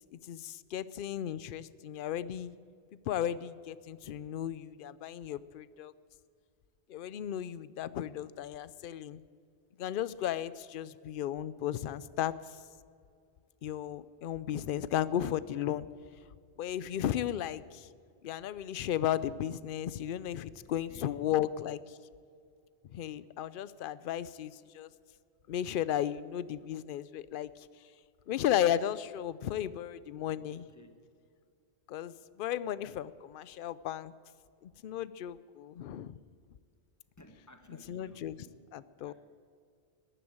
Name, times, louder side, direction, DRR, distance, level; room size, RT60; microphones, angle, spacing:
voice 1, 0.1-2.5 3.1-5.9 6.9-9.2 9.8-12.6 13.6-15.9 16.6-17.9 18.2-22.0 22.9-24.9 25.5-27.7 28.3-30.7 31.9-34.1 34.6-36.2 37.7-38.4 38.7-39.1, left 11 dB, 60° left, 17 dB, 0.7 m, -35 dB
voice 2, 20.6-21.2 30.3-31.1 37.2-38.6 39.0-39.1, left 1 dB, 15° left, 7 dB, 1.1 m, -57 dB
14.0 x 11.0 x 8.7 m, 2.3 s
omnidirectional pair, 1.1 m